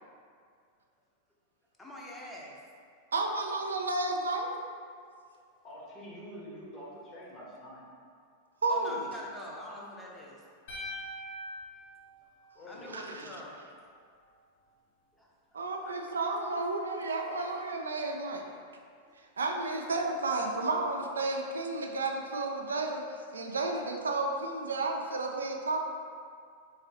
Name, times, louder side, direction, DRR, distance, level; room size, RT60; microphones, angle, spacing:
voice 1, 1.8-2.6 5.5-5.6 8.7-10.4 12.7-13.5 15.1-16.0, equal, 10° left, -3 dB, 0.7 m, -45 dB
voice 2, 3.1-4.5 8.6-9.0 12.9-13.2 15.5-18.4 19.4-25.9, right 2 dB, 80° right, 2 dB, 0.3 m, -32 dB
voice 3, 5.6-7.8 12.5-13.5, equal, 35° left, -5 dB, 1.1 m, -46 dB
sound 1, 10.7-12.9, equal, 60° left, 0.8 m, -43 dB
3.7 x 3.2 x 2.9 m, 2.2 s
hypercardioid pair, 95°, 0 cm